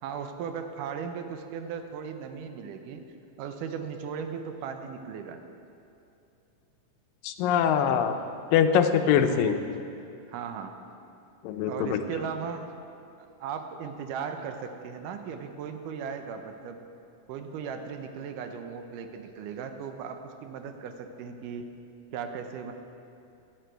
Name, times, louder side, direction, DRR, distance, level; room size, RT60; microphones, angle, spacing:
voice 1, 0.0-3.0 3.4-5.4 9.3-9.5 10.3-10.7 11.7-12.7 13.1-16.9 17.3-21.7 22.1-22.7, right 6 dB, 75° right, 6 dB, 2.2 m, -37 dB
voice 2, 7.2-8.2 8.5-9.6 11.4-12.0, left 8 dB, 80° left, 8 dB, 2.3 m, -23 dB
16.0 x 10.0 x 4.6 m, 2.6 s
omnidirectional pair, 4.0 m